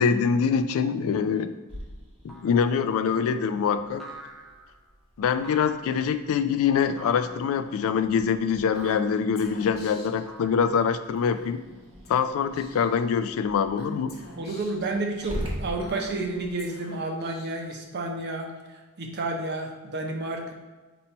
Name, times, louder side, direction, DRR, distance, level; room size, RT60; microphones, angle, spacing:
voice 1, 0.0-1.5 2.2-4.0 5.2-11.6 12.1-14.1, left 6 dB, 65° left, 11 dB, 0.3 m, -24 dB
Growling, 1.7-16.5, equal, 25° right, 0.9 m, -43 dB
sound 1, 2.3-2.7 4.0-4.8 5.4-6.0 7.0-7.5 8.8-9.3 10.3-11.0, right 1 dB, ahead, 0.5 m, -45 dB
Female speech woman speaking / Whispering, 8.7-10.2 11.2-11.6 12.0-12.2 12.5-13.0 13.8-14.9 15.8-17.8, left 1 dB, 45° left, 0.9 m, -43 dB
voice 2, 14.4-20.5, right 2 dB, 50° right, 2 dB, 0.7 m, -31 dB
4.3 x 2.9 x 4.3 m, 1.3 s
head